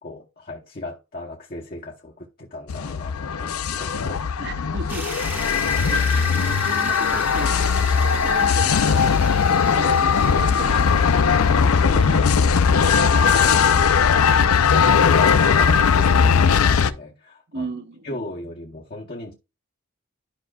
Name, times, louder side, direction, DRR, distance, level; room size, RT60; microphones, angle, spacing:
voice 1, 0.0-4.2 14.7-17.7 18.0-19.3, left 2 dB, 40° left, 0.9 m, -36 dB
sound 1, 2.7-16.9, left 6 dB, 85° left, 0.5 m, -19 dB
voice 2, 4.4-5.1 5.8-9.0 9.7-14.1 17.5-18.1, right 3 dB, 55° right, 1.0 m, -36 dB
sound 2, 4.9-12.9, right 1 dB, 10° right, 0.9 m, -36 dB
12.0 x 5.4 x 2.4 m
head